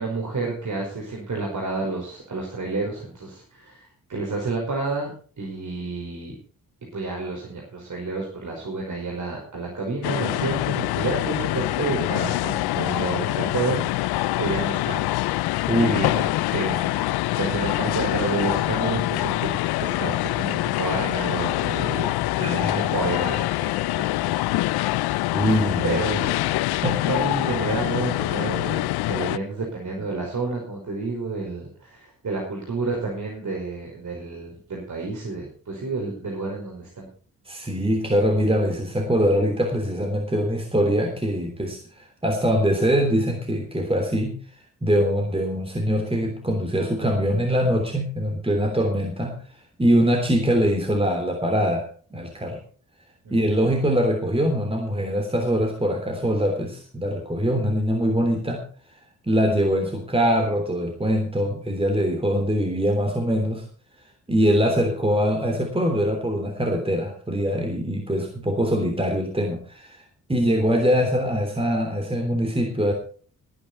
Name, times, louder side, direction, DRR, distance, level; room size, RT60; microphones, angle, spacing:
voice 1, 0.0-5.1 5.4-6.4 6.9-15.1 15.8-19.5 19.8-25.0 25.8-26.5 27.1-37.1 53.2-53.4, right 3 dB, 50° right, 0 dB, 5.3 m, -30 dB
sound 1, 10.0-29.4, left 18 dB, 85° left, 0.5 m, -25 dB
voice 2, 22.4-22.9 24.3-24.4 25.3-26.0 26.7-27.0 37.5-44.4 44.8-49.4 49.8-51.9 52.1-52.6 53.3-58.6 59.3-63.6 64.3-70.0 70.3-72.9, equal, 15° right, 3 dB, 3.3 m, -23 dB
18.0 x 10.0 x 4.4 m, 0.43 s
supercardioid pair, 60°, 37 cm